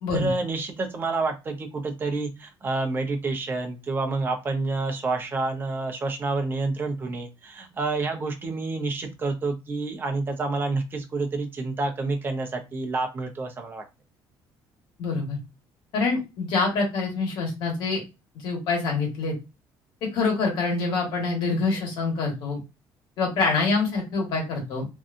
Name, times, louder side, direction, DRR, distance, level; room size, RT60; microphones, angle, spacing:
voice 1, 0.1-13.8, right 3 dB, 25° right, 4 dB, 0.6 m, -28 dB
voice 2, 15.0-15.4 15.9-18.0 18.4-19.3 20.0-22.6 23.2-24.9, left 4 dB, 65° left, 0 dB, 1.3 m, -25 dB
2.7 x 2.3 x 2.5 m, 0.25 s
cardioid pair, 135°, 9 cm